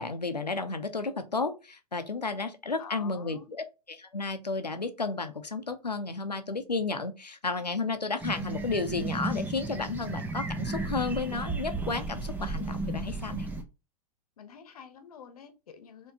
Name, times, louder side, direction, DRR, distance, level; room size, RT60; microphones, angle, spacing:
voice 1, 0.0-13.5, left 3 dB, 90° left, 0.6 m, -32 dB
voice 2, 2.8-3.5 14.4-16.1, left 6 dB, 65° left, 0.9 m, -48 dB
sound 1, 8.2-13.6, right 2 dB, 10° right, 0.7 m, -34 dB
4.4 x 3.0 x 2.8 m
figure-of-eight pair, 95°, 20 cm